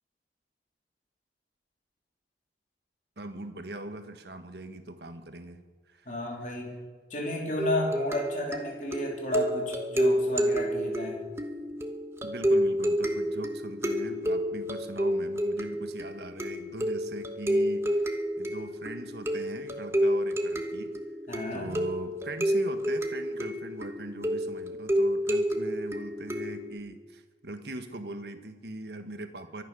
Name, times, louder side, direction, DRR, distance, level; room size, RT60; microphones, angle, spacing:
voice 1, 3.2-5.6 5.9-6.1 12.2-18.1 18.4-21.0 21.5-29.6, right 2 dB, 70° right, 8 dB, 1.4 m, -40 dB
voice 2, 6.1-6.7 7.1-11.3 21.3-21.7, equal, 45° left, -1 dB, 3.4 m, -32 dB
sound 1, 7.6-26.8, equal, 15° right, 1.1 m, -30 dB
24.0 x 9.4 x 6.2 m, 1.4 s
head